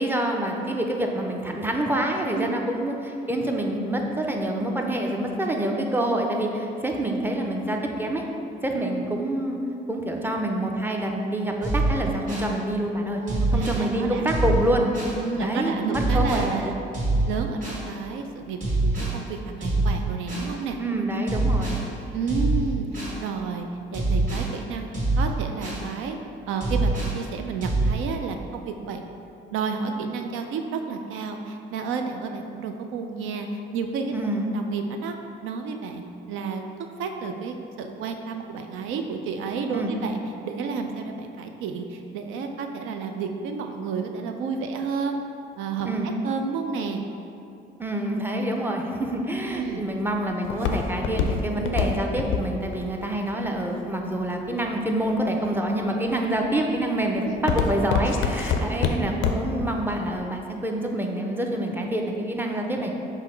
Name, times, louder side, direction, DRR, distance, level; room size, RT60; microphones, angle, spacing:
voice 1, 0.0-8.2 8.6-9.6 9.9-13.2 13.5-14.9 15.4-16.7 20.8-21.8 34.1-34.4 39.7-39.9 45.8-46.1 47.8-62.9, right 1 dB, 10° right, 1 dB, 0.5 m, -26 dB
sound 1, 11.6-12.5 13.3-13.8 14.3-15.2 15.9-16.5 16.9-17.8 18.6-19.2 19.6-20.5 21.3-21.8 22.3-23.2 23.9-24.5 24.9-25.9 26.6-27.2 27.6-27.9, right 2 dB, 45° right, 1.5 m, -25 dB
voice 2, 13.0-14.3 15.1-16.8 17.3-20.8 22.1-23.7 23.9-24.9 25.2-26.2 26.5-29.1 29.5-34.2 34.5-35.1 35.4-36.6 37.0-40.2 40.4-45.2 45.6-45.9 46.2-47.0 49.5-49.8 57.2-57.4 58.6-59.0, right 5 dB, 90° right, 5 dB, 0.4 m, -31 dB
Walk footsteps, 49.4-54.5 55.1-55.6 56.1-56.4 56.8-59.6 60.0-60.1, left 6 dB, 85° left, 0.4 m, -26 dB
5.5 x 2.0 x 4.4 m, 2.7 s
cardioid pair, 90°, 20 cm